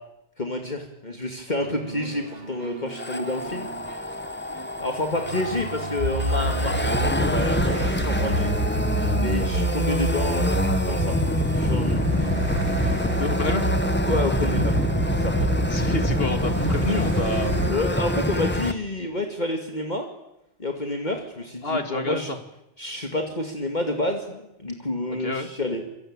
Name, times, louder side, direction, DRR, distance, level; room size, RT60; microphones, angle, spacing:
voice 1, 0.4-3.7 4.0-4.2 4.8-8.5 9.1-11.2 11.5-12.1 14.1-14.8 15.1-15.3 17.6-20.1 20.6-22.3 22.8-25.8, left 1 dB, 45° left, 3 dB, 2.5 m, -29 dB
sound 1, 1.6-18.5, right 2 dB, 60° right, 4.3 m, -39 dB
sound 2, 2.9-18.7, left 1 dB, 10° left, 1.3 m, -26 dB
sound 3, 6.0-17.7, right 1 dB, 85° right, 3.7 m, -27 dB
voice 2, 13.2-13.7 15.7-17.6 21.6-22.4 25.1-25.5, left 3 dB, 65° left, 7 dB, 2.8 m, -28 dB
27.0 x 23.0 x 8.9 m, 0.85 s
omnidirectional pair, 1.1 m